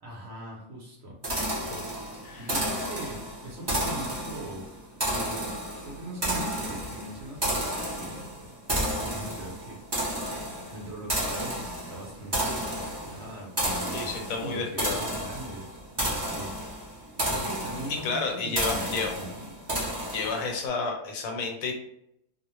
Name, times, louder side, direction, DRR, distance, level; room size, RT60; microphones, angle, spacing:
voice 1, 0.0-1.5 2.4-4.7 5.1-5.5 5.8-19.5, right 1 dB, 60° right, -2 dB, 0.7 m, -41 dB
sound 1, 1.2-20.6, right 1 dB, 25° right, 0.5 m, -32 dB
voice 2, 13.9-15.0 17.9-19.1 20.1-21.7, left 4 dB, 85° left, 2 dB, 1.0 m, -31 dB
2.3 x 2.0 x 3.0 m, 0.77 s
omnidirectional pair, 1.5 m